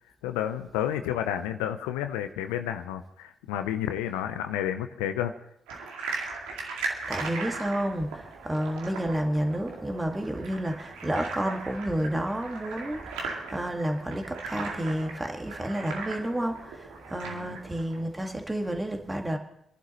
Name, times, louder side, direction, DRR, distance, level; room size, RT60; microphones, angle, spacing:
voice 1, 0.2-5.3 17.2-17.6, left 11 dB, 75° left, 9 dB, 0.7 m, -31 dB
sound 1, 5.7-18.0, right 4 dB, 75° right, 2.2 m, -38 dB
voice 2, 7.1-19.4, right 1 dB, 15° right, 4 dB, 2.0 m, -30 dB
27.0 x 11.5 x 3.1 m, 0.75 s
figure-of-eight pair, 40°, 0 cm